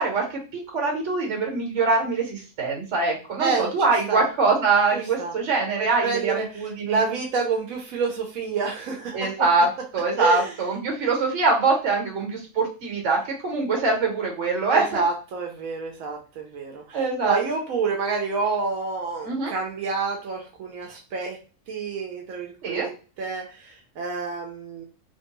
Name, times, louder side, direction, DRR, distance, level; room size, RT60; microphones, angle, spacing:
voice 1, 0.0-7.1 9.1-9.7 9.9-15.0 16.9-17.4 19.2-19.5 22.6-22.9, right 3 dB, 65° right, 1 dB, 1.3 m, -23 dB
voice 2, 4.9-5.3 5.8-9.3 10.2-10.5 14.7-21.4 21.7-22.9 23.2-24.8, right 4 dB, 85° right, 1 dB, 1.0 m, -28 dB
2.8 x 2.2 x 2.9 m, 0.34 s
omnidirectional pair, 1.4 m